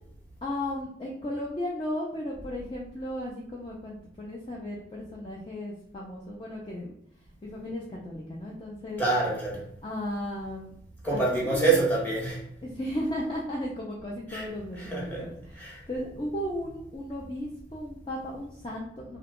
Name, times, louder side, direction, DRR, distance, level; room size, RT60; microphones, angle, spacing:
voice 1, 0.4-6.9 7.4-9.0 9.8-10.7 11.1-11.8 12.6-19.2, left 1 dB, 25° left, -4 dB, 0.4 m, -35 dB
voice 2, 9.0-9.6 11.0-12.4 14.3-14.5 14.8-15.3 15.5-15.8, right 3 dB, 10° left, -5 dB, 1.0 m, -26 dB
2.8 x 2.3 x 3.6 m, 0.71 s
head